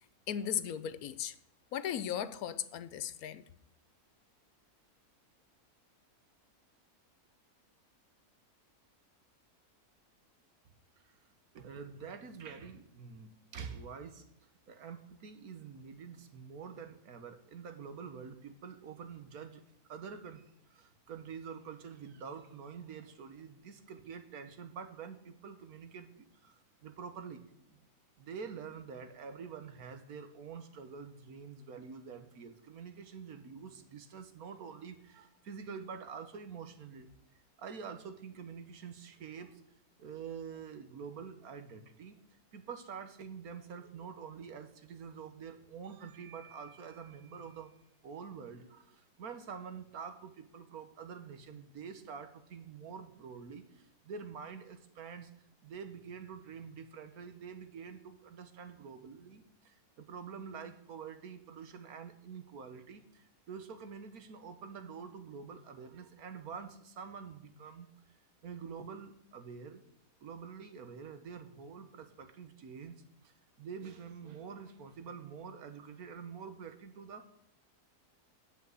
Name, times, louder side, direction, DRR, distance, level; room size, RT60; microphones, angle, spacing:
voice 1, 0.3-1.3 1.7-3.4, left 9 dB, 75° left, 1.1 m, -36 dB
voice 2, 11.5-14.3 14.7-19.6 19.9-26.1 26.4-27.8 28.2-37.1 37.6-39.6 40.0-42.2 42.5-47.7 48.0-55.3 55.6-67.9 68.4-69.8 70.2-77.3, right 6 dB, 70° right, 1.5 m, -47 dB
10.0 x 5.7 x 7.7 m
omnidirectional pair, 1.6 m